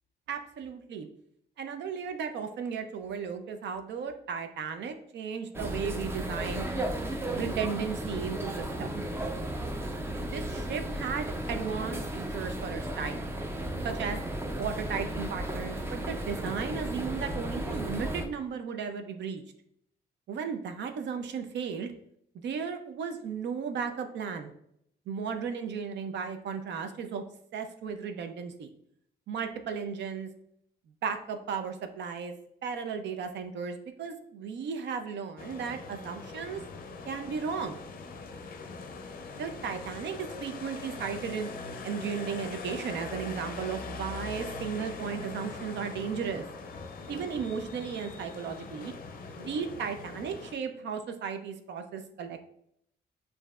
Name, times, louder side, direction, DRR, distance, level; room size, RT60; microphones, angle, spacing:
voice 1, 0.3-1.1 1.6-6.6 7.3-9.0 10.2-13.3 13.8-14.2 14.5-19.4 20.3-21.9 22.4-24.5 25.1-27.2 27.5-28.7 29.3-30.3 31.0-32.3 32.6-36.6 37.1-37.8 39.4-41.5 41.8-46.4 47.1-48.9 49.4-52.5, right 6 dB, 75° right, 7 dB, 0.5 m, -35 dB
sound 1, 5.5-18.3, right 1 dB, 15° right, 0.4 m, -34 dB
sound 2, 35.4-50.5, left 4 dB, 55° left, 0.5 m, -42 dB
6.5 x 2.6 x 2.3 m, 0.72 s
cardioid pair, 135°, 18 cm